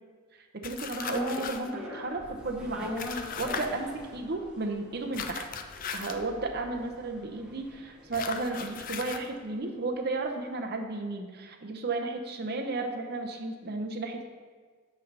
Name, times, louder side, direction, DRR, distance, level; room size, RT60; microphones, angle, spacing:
voice 1, 0.3-5.5 5.9-14.3, right 2 dB, 45° right, 3 dB, 0.7 m, -34 dB
sound 1, 0.6-1.7 3.0-3.7 5.1-6.2 8.1-9.3, left 7 dB, 40° left, 0.4 m, -37 dB
sound 2, 1.0-9.3 9.6-9.7, left 1 dB, 5° right, 0.7 m, -41 dB
8.3 x 3.4 x 5.3 m, 1.5 s
head